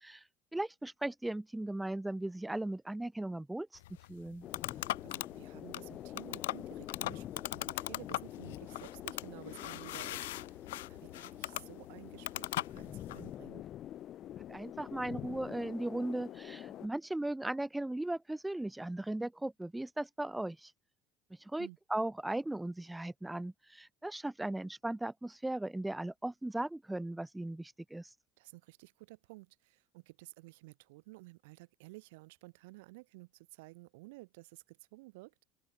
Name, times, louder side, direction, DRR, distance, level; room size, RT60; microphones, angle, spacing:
voice 1, 0.5-3.7 4.1-4.5 14.5-20.7 21.5-28.1, right 1 dB, 10° right, 0.6 m, -37 dB
sound 1, 3.8-13.3, left 17 dB, 90° left, 0.5 m, -40 dB
sound 2, 4.4-16.9, left 12 dB, 55° left, 2.9 m, -46 dB
voice 2, 4.6-10.6 10.9-13.6 21.6-21.8 28.4-35.3, right 23 dB, 80° right, 1.5 m, -53 dB
open air
supercardioid pair, 85°, 0 cm